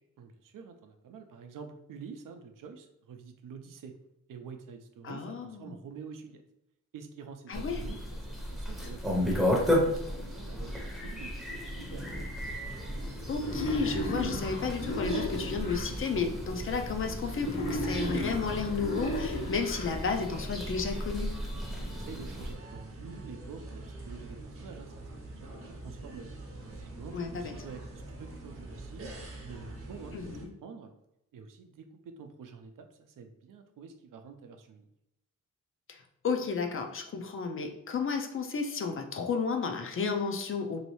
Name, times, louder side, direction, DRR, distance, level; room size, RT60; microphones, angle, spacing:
voice 1, 0.2-3.9 4.3-6.4 6.9-12.1 21.9-25.0 25.3-25.5 25.8-26.3 26.6-29.1 29.4-30.2 30.6-30.9 31.3-34.8, right 5 dB, 80° right, 6 dB, 0.5 m, -47 dB
voice 2, 5.0-5.7 7.5-7.8 13.3-21.3 27.1-27.5 30.1-30.5 35.9-40.8, left 5 dB, 40° left, 4 dB, 0.4 m, -32 dB
sound 1, 7.5-22.5, left 1 dB, ahead, 0.6 m, -34 dB
sound 2, 11.9-30.5, right 2 dB, 45° right, 0.7 m, -45 dB
Wild animals, 13.4-15.8 17.4-19.8, equal, 70° left, 0.9 m, -34 dB
3.1 x 2.7 x 3.0 m, 0.85 s
wide cardioid pair, 165°, 32 cm